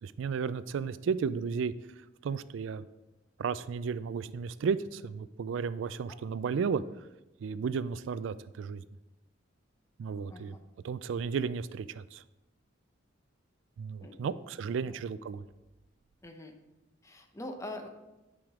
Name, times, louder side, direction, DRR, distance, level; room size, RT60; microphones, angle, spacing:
voice 1, 0.0-1.7 2.2-2.9 3.4-6.8 7.4-8.8 10.0-10.6 10.8-12.2 13.8-15.4, right 6 dB, 70° right, 16 dB, 0.3 m, -33 dB
voice 2, 14.0-14.4 14.9-15.0 16.2-16.5 17.0-17.9, left 1 dB, 15° left, 5 dB, 0.7 m, -43 dB
9.0 x 5.0 x 3.7 m, 1.0 s
head